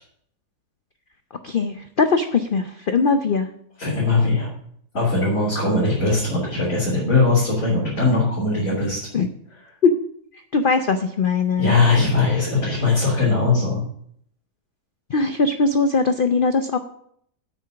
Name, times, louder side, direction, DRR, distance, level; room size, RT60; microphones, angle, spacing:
voice 1, 1.4-3.5 9.1-9.3 9.8-9.9 10.5-11.8 15.1-16.8, left 4 dB, 75° left, 8 dB, 0.4 m, -20 dB
voice 2, 3.8-4.5 4.9-9.0 11.6-13.8, left 3 dB, 50° left, -7 dB, 3.9 m, -20 dB
8.5 x 6.2 x 8.0 m, 0.67 s
omnidirectional pair, 1.8 m